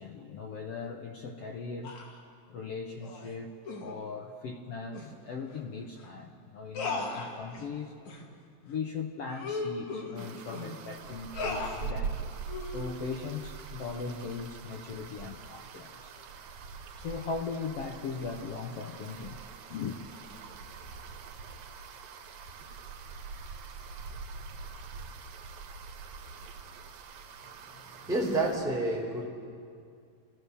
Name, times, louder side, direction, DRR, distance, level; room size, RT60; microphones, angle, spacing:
voice 1, 0.0-2.0 2.5-3.5 3.8-7.9 8.6-12.3 12.7-16.3 17.0-19.4 19.7-20.0, left 5 dB, 70° left, 2 dB, 1.4 m, -39 dB
sound 1, 1.8-2.2 3.0-3.3 3.6-3.9 4.9-5.1 5.5-5.6 6.0-6.1 6.7-7.7 8.1-8.2 8.7-8.8 9.3-10.7 11.3-11.8 12.5-12.9, left 3 dB, 55° left, 3.2 m, -37 dB
sound 2, 10.2-28.5, right 5 dB, 75° right, 2.8 m, -43 dB
voice 2, 27.7-29.2, right 2 dB, ahead, -3 dB, 3.0 m, -30 dB
27.0 x 16.0 x 6.8 m, 2.3 s
omnidirectional pair, 4.1 m